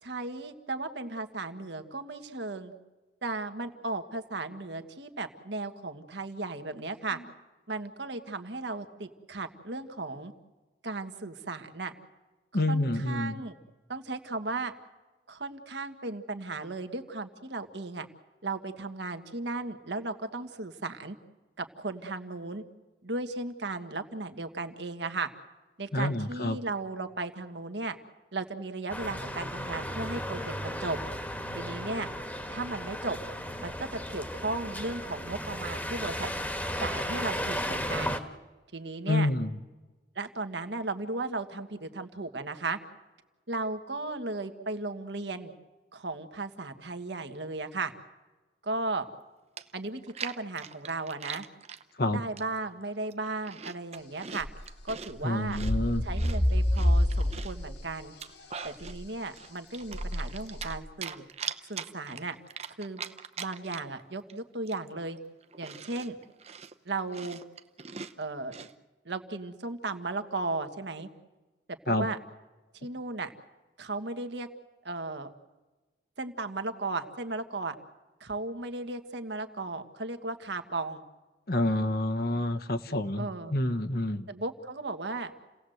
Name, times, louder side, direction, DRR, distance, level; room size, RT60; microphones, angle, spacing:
voice 1, 0.0-2.7 3.2-7.2 7.7-10.3 10.8-11.9 12.5-13.6 13.9-14.7 15.3-18.1 18.4-21.2 21.6-22.6 23.0-25.3 25.8-28.0 28.3-31.0 31.5-32.1 32.5-33.2 33.6-36.3 36.8-38.2 38.7-39.3 40.2-42.8 43.5-45.5 45.9-47.9 48.6-49.1 49.7-51.5 52.1-54.5 54.8-55.6 56.0-58.1 58.6-61.2 61.7-62.4 62.8-63.0 63.4-65.2 65.6-66.2 66.9-67.4 68.2-68.7 69.1-71.1 71.7-72.2 72.8-73.3 73.8-74.5 74.8-75.3 76.2-77.7 78.2-81.0 83.2-83.5 84.3-85.3, right 3 dB, 75° right, 7 dB, 1.6 m, -35 dB
voice 2, 12.5-13.4 25.9-26.6 39.1-39.5 52.0-52.2 55.2-56.1 71.9-72.1 81.5-84.3, left 1 dB, 55° left, 9 dB, 1.1 m, -28 dB
sound 1, 28.9-38.2, equal, 10° left, 1.4 m, -35 dB
Chewing mastication, 49.2-49.3 49.6-51.8 52.4-52.7 53.1-55.1 55.5-57.6 58.0-59.0 59.3-60.7 61.0-64.0 64.3-64.4 64.7-68.7, right 6 dB, 35° right, 0.8 m, -41 dB
sound 2, 54.4-55.2 55.4-57.9 58.2-59.0 59.9-60.8, left 1 dB, 70° left, 4.0 m, -28 dB
29.5 x 17.5 x 7.9 m, 1.2 s
head